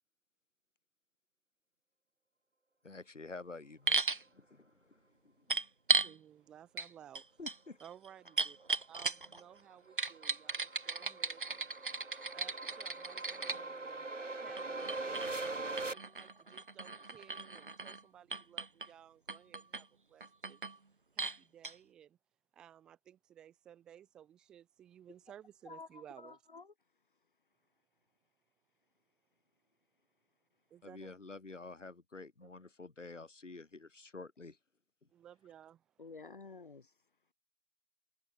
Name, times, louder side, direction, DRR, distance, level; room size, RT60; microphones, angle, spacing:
voice 1, 2.8-5.6 7.4-7.8 30.8-34.6, left 3 dB, 60° left, 4.2 m, -49 dB
sound 1, 3.9-4.2 5.5-6.1 6.8-6.9 7.1-9.4 10.0-13.6 14.6-18.0 18.3-18.9 19.3-19.8 20.2-20.8 21.2-21.4 21.6-21.7, right 3 dB, 35° right, 1.9 m, -36 dB
voice 2, 6.0-7.4 7.8-8.6 8.9-11.9 12.3-20.6 21.1-22.2 22.5-26.4 30.7-31.1 32.4-32.5 35.1-36.1, right 10 dB, ahead, 2.1 m, -57 dB
sound 2, 9.4-15.9, right 3 dB, 60° right, 7.9 m, -42 dB
voice 3, 25.7-26.6 36.0-36.9, left 4 dB, 35° left, 5.1 m, -51 dB
figure-of-eight pair, 170°, 42 cm